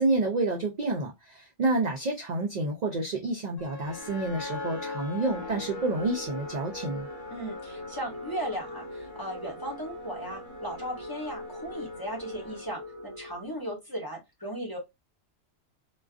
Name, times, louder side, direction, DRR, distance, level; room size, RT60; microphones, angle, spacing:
voice 1, 0.0-7.1, right 2 dB, 60° right, 0.4 m, -29 dB
sound 1, 3.6-13.8, left 2 dB, 45° left, 1.1 m, -40 dB
voice 2, 7.3-14.8, equal, 20° left, 0.7 m, -37 dB
2.4 x 2.2 x 2.3 m
omnidirectional pair, 1.2 m